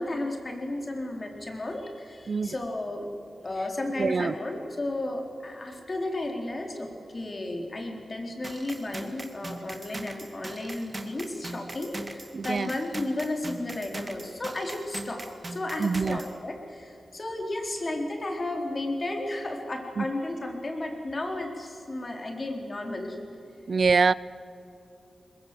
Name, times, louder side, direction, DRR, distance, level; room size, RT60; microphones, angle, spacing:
voice 1, 0.0-3.1 3.4-15.2 15.5-23.2, left 2 dB, 40° left, 2 dB, 4.1 m, -33 dB
voice 2, 4.0-4.3 12.3-12.7 15.8-16.2 20.0-20.1 23.7-24.1, right 4 dB, 60° right, 19 dB, 0.6 m, -24 dB
sound 1, 8.4-16.3, right 2 dB, 30° right, 2.1 m, -40 dB
22.0 x 21.5 x 7.9 m, 2.7 s
wide cardioid pair, 80°, 0 cm